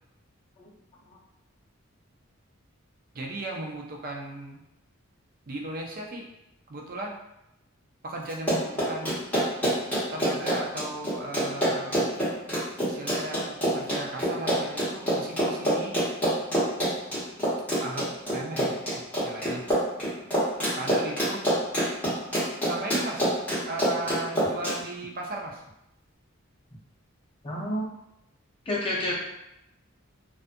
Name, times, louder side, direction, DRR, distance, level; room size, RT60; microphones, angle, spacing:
voice 1, 3.1-4.6 5.5-6.3 6.7-7.2 8.0-9.2 10.1-12.1 12.9-16.0 17.8-19.7 20.8-21.4 22.6-23.3 23.7-25.6, right 2 dB, 40° right, 0 dB, 0.4 m, -36 dB
Run, 8.3-24.8, equal, 10° left, 1.0 m, -26 dB
voice 2, 27.4-27.9 28.7-29.2, left 1 dB, 25° left, -5 dB, 0.5 m, -29 dB
2.5 x 2.3 x 2.5 m, 0.87 s
head